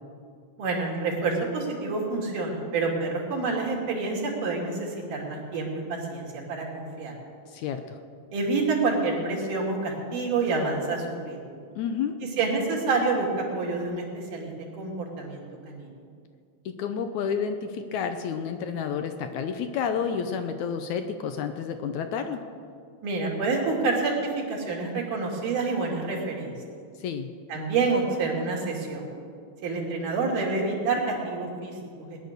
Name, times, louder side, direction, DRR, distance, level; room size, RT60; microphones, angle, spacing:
voice 1, 0.6-7.1 8.3-11.5 12.4-13.3 13.5-15.9 23.0-24.1 24.5-26.6 27.5-29.1 29.6-32.2, right 3 dB, 60° right, -1 dB, 4.0 m, -28 dB
voice 2, 7.5-8.0 11.8-12.2 16.7-22.4 27.0-27.3, left 7 dB, 75° left, 8 dB, 1.8 m, -30 dB
19.5 x 10.5 x 6.7 m, 2.3 s
omnidirectional pair, 4.1 m